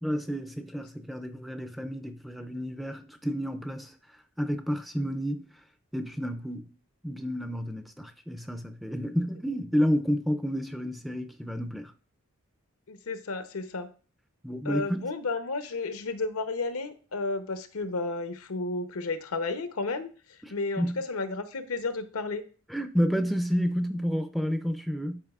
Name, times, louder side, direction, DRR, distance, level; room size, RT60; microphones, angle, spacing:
voice 1, 0.0-3.9 4.4-5.5 5.9-6.6 7.0-11.9 14.4-15.1 20.4-21.0 22.7-25.2, equal, ahead, 0.3 m, -30 dB
voice 2, 12.9-13.9 14.6-22.4, left 3 dB, 85° left, 0.8 m, -32 dB
11.0 x 4.8 x 2.4 m
head